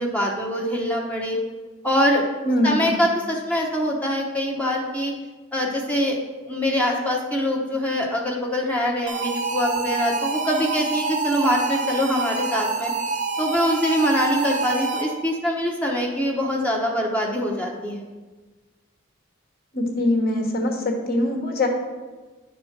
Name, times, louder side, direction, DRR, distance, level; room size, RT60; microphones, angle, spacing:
voice 1, 0.0-1.4 1.8-2.2 2.6-5.1 5.5-6.2 6.5-12.9 13.4-18.0, equal, 5° left, -2 dB, 0.9 m, -24 dB
voice 2, 2.4-2.9 19.7-21.7, left 1 dB, 50° left, 2 dB, 1.3 m, -22 dB
sound 1, 9.1-15.3, right 4 dB, 35° right, 0.8 m, -27 dB
9.9 x 4.3 x 5.9 m, 1.3 s
head